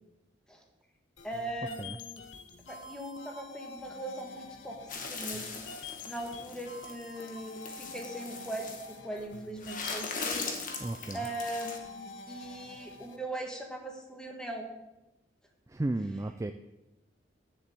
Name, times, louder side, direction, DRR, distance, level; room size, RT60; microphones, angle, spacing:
sound 1, 1.2-13.2, left 3 dB, 85° left, 1.0 m, -47 dB
voice 1, 1.2-2.2 2.7-5.7 6.0-10.5 11.1-14.7, right 1 dB, 5° left, 1 dB, 1.5 m, -40 dB
sound 2, 4.9-8.9 9.6-11.8, left 4 dB, 45° left, 1.3 m, -40 dB
voice 2, 10.8-11.3 15.7-16.5, right 2 dB, 15° right, 8 dB, 0.3 m, -34 dB
7.1 x 6.9 x 7.7 m, 0.97 s
head